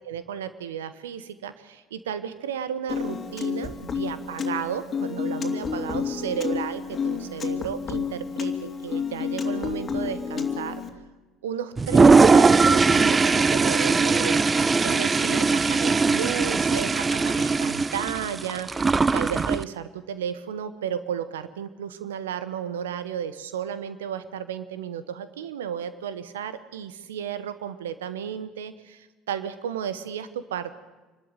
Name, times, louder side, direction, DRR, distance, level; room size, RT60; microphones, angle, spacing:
voice 1, 0.0-10.8 11.4-30.7, right 8 dB, 80° right, 13 dB, 1.1 m, -33 dB
Piano, 2.9-10.9, left 6 dB, 35° left, 2.6 m, -30 dB
Toilet flush, 11.8-19.6, right 4 dB, 25° right, 0.7 m, -20 dB
26.5 x 13.0 x 9.0 m, 1.2 s
hypercardioid pair, 65°, 0 cm